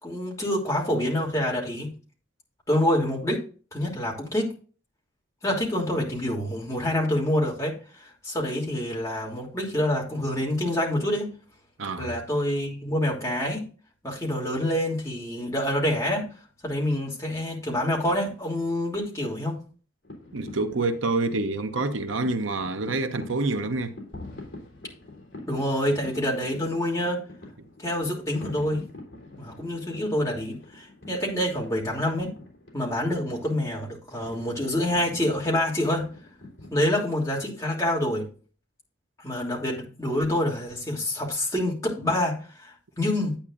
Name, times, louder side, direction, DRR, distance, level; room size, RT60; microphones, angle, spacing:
voice 1, 0.0-1.9 2.7-3.4 3.7-4.5 5.4-11.3 12.0-13.7 14.0-16.3 16.6-19.6 25.5-27.2 27.8-28.8 29.4-32.3 32.7-36.1 36.7-38.3 39.2-43.4, left 1 dB, 15° left, 3.0 m, -27 dB
voice 2, 11.8-12.1 20.3-24.0, right 3 dB, 80° right, 1.0 m, -27 dB
sound 1, 20.0-36.7, left 1 dB, 60° left, 3.4 m, -46 dB
10.5 x 8.7 x 2.6 m
head